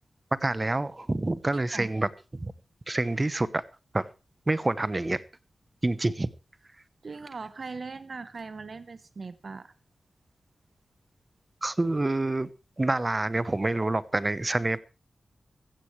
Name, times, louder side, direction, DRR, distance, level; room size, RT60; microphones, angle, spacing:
voice 1, 0.4-2.5 2.9-3.6 3.9-4.1 4.5-5.2 5.8-6.3 11.6-12.5 12.8-14.8, right 2 dB, 25° right, 16 dB, 0.9 m, -27 dB
voice 2, 1.5-1.9 7.0-9.7, right 4 dB, 50° right, 12 dB, 1.0 m, -40 dB
15.5 x 15.5 x 3.2 m, 0.31 s
wide cardioid pair, 100°, 0 cm